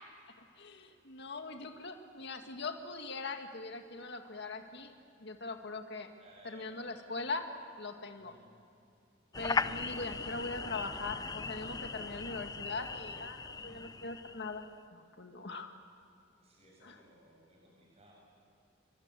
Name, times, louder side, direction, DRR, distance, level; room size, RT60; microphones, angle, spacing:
voice 1, 0.6-4.9 5.2-6.1 6.4-7.4 7.8-8.3 9.4-14.6 14.9-15.7 16.8-17.0, left 3 dB, 60° left, 5 dB, 2.0 m, -41 dB
voice 2, 6.2-7.3 8.2-8.4 9.9-10.6 13.5-13.9 16.4-18.1, right 1 dB, 35° right, -2 dB, 7.2 m, -61 dB
sound 1, 9.3-14.7, left 4 dB, 20° left, 0.6 m, -38 dB
28.5 x 23.5 x 8.4 m, 2.6 s
head